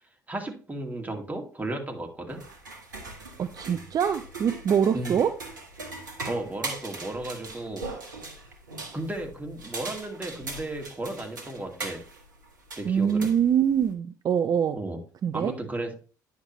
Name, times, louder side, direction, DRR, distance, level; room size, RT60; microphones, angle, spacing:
voice 1, 0.3-2.4 4.9-5.2 6.2-7.8 8.9-12.0 12.8-13.3 14.7-15.0 15.3-15.9, right 2 dB, 15° right, 2 dB, 2.2 m, -34 dB
sound 1, 2.3-13.9, right 3 dB, 85° right, 1.2 m, -40 dB
voice 2, 3.4-5.3 12.8-14.8 15.2-15.5, right 8 dB, 40° right, 10 dB, 0.6 m, -24 dB
9.6 x 5.9 x 3.1 m, 0.38 s
figure-of-eight pair, 55°, 10 cm